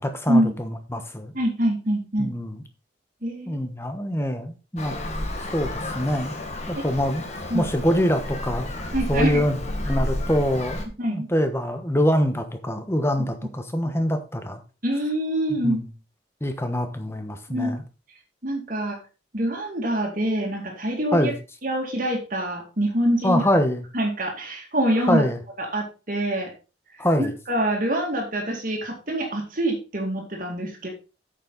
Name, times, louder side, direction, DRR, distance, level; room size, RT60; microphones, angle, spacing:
voice 1, 0.0-1.3 2.2-2.6 3.5-4.9 5.5-6.4 6.7-7.2 7.5-14.6 15.5-15.9 16.4-17.8 21.1-21.4 23.2-23.8 25.0-25.4 27.0-27.4, equal, 15° left, 7 dB, 1.1 m, -25 dB
voice 2, 1.3-2.3 3.2-3.6 6.8-6.9 7.5-7.7 8.9-9.4 11.0-11.3 14.8-15.8 17.5-17.7 18.4-19.0 19.3-21.3 21.6-23.5 23.9-25.2 25.6-26.5 27.2-30.9, right 1 dB, 45° right, 1 dB, 2.3 m, -25 dB
Traffic noise roadway noise, 4.8-10.9, left 1 dB, 35° left, 1.6 m, -31 dB
8.7 x 7.3 x 4.0 m, 0.32 s
head